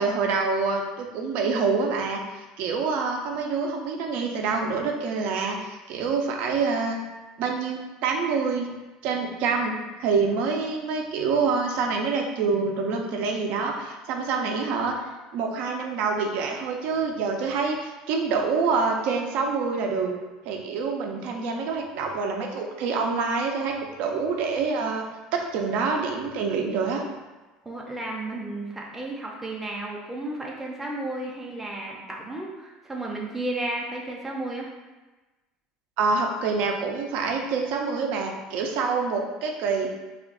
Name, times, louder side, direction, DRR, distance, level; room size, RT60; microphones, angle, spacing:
voice 1, 0.0-2.2 2.6-7.0 7.4-8.7 9.0-14.9 15.3-20.1 20.4-25.0 25.3-27.0 36.0-39.9, right 4 dB, 65° right, 2 dB, 0.5 m, -26 dB
voice 2, 27.6-34.7, right 2 dB, 10° right, -3 dB, 0.5 m, -33 dB
2.4 x 2.2 x 3.6 m, 1.2 s
supercardioid pair, 100°, 3 cm